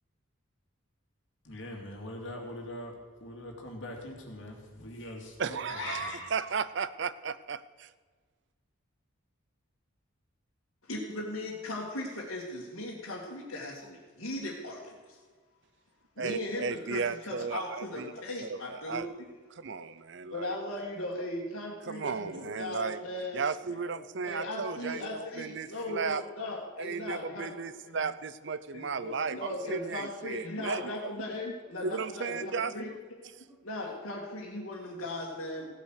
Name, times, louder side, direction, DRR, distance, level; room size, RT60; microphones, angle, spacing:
voice 1, 1.4-6.4, left 1 dB, 60° left, 0 dB, 2.7 m, -42 dB
voice 2, 5.4-7.9 16.2-18.1 18.4-19.1 19.5-20.6 21.9-23.0 23.3-26.2 26.8-31.1 31.8-32.7 33.4-33.5, right 5 dB, 55° right, 15 dB, 0.5 m, -35 dB
voice 3, 10.9-15.0 16.2-19.3 19.8-19.9 20.3-23.4 23.8-23.9 24.2-27.6 27.9-28.0 28.7-32.9 33.2-35.7, left 1 dB, 75° left, -6 dB, 2.1 m, -38 dB
16.5 x 8.4 x 6.5 m, 1.5 s
head